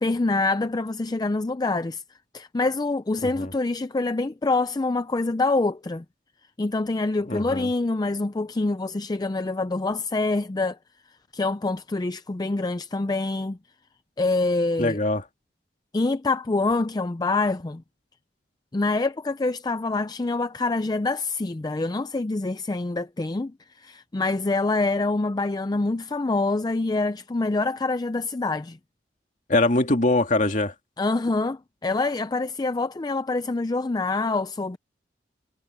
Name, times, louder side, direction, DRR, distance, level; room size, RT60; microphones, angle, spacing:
voice 1, 0.0-2.0 2.3-6.0 6.6-10.8 11.3-13.6 14.2-15.0 15.9-17.8 18.7-28.8 31.0-34.8, left 3 dB, 20° left, 0.4 m, -26 dB
voice 2, 7.3-7.7 14.8-15.2 29.5-30.7, left 2 dB, 45° left, 2.4 m, -22 dB
head